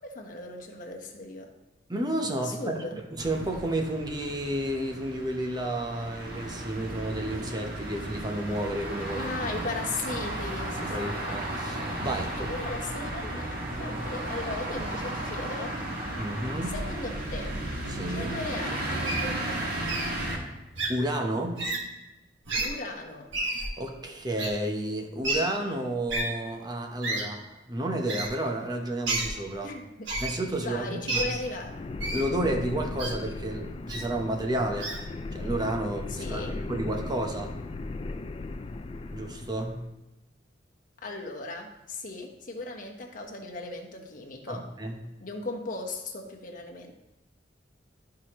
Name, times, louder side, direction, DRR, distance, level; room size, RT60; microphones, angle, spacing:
voice 1, 0.0-1.5 2.4-3.0 9.1-11.1 12.3-15.7 16.7-17.5 18.1-19.9 22.6-23.3 29.6-29.9 30.6-31.7 36.1-36.5 41.0-44.7 45.2-46.9, left 2 dB, 45° left, 1 dB, 1.1 m, -37 dB
voice 2, 1.9-2.8 3.1-9.3 10.8-12.5 16.2-16.7 17.9-18.3 20.9-21.6 23.8-29.7 30.2-31.3 32.1-34.9 35.3-37.5 39.1-39.8 44.5-45.0, right 1 dB, 20° right, 3 dB, 0.8 m, -31 dB
sound 1, 3.2-20.4, right 1 dB, 55° right, 1.7 m, -34 dB
Wild animals, 19.0-19.2 19.9-20.1 20.8-20.9 21.6-21.8 22.5-22.7 23.3-23.7 24.4-24.5 25.2-25.4 26.1-26.2 27.0-27.2 28.1-28.3 29.1-29.3 30.1-30.3 31.1-31.2 32.0-32.2 33.0-33.1 33.9-34.0 34.8-35.0, right 2 dB, 85° right, 1.6 m, -30 dB
sound 2, 30.3-39.9, left 2 dB, 30° left, 0.3 m, -37 dB
13.0 x 4.8 x 3.0 m, 0.98 s
head